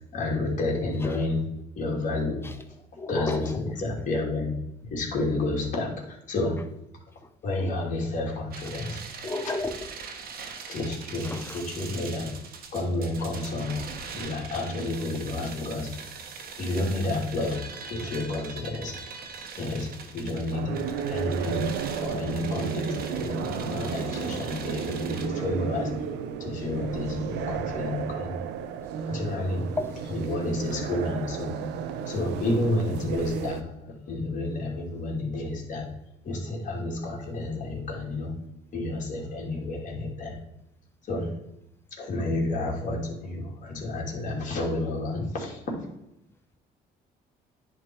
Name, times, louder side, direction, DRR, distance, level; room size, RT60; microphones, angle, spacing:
voice 1, 0.1-1.5 1.8-2.4 3.1-4.5 4.9-6.6 7.4-9.0 10.7-12.3 12.7-13.8 14.2-15.9 16.6-19.0 19.6-19.9 20.1-20.8 21.1-25.9 26.4-28.4 29.1-29.7 30.1-31.6 32.1-35.9 36.2-38.4 38.7-40.4 41.1-41.3 41.9-45.6, left 2 dB, 50° left, -1 dB, 2.5 m, -30 dB
voice 2, 3.0-3.6 9.2-9.7 11.3-11.6 29.8-29.9, left 2 dB, 15° left, 8 dB, 0.8 m, -31 dB
sound 1, 8.5-25.3, right 5 dB, 60° right, 1.3 m, -41 dB
sound 2, 20.5-33.6, right 7 dB, 90° right, 0.7 m, -33 dB
10.0 x 3.7 x 4.5 m, 0.85 s
cardioid pair, 110°, 17 cm